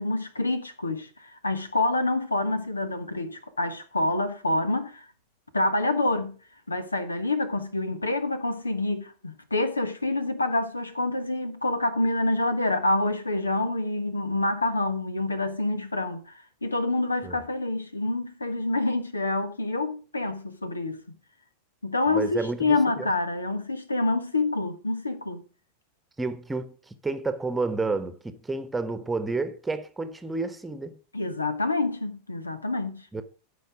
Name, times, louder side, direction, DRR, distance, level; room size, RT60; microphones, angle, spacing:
voice 1, 0.0-5.0 5.5-6.4 6.7-16.3 16.6-21.1 21.8-25.4 31.1-33.1, left 2 dB, 80° left, 1.2 m, -27 dB
voice 2, 22.1-23.1 26.2-31.0 33.1-33.2, right 3 dB, 10° right, 1.2 m, -30 dB
14.0 x 5.3 x 5.0 m
figure-of-eight pair, 90°, 0 cm